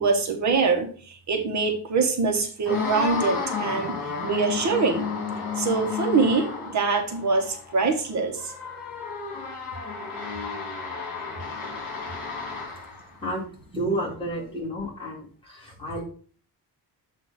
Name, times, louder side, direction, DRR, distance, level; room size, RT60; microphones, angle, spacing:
voice 1, 0.0-5.1 5.6-8.5, right 4 dB, 45° right, 4 dB, 1.0 m, -24 dB
sound 1, 2.7-13.1, left 5 dB, 55° left, 2.4 m, -32 dB
voice 2, 13.7-16.0, right 1 dB, 15° left, -4 dB, 2.1 m, -31 dB
7.8 x 2.7 x 5.7 m, 0.43 s
cardioid pair, 165°, 40 cm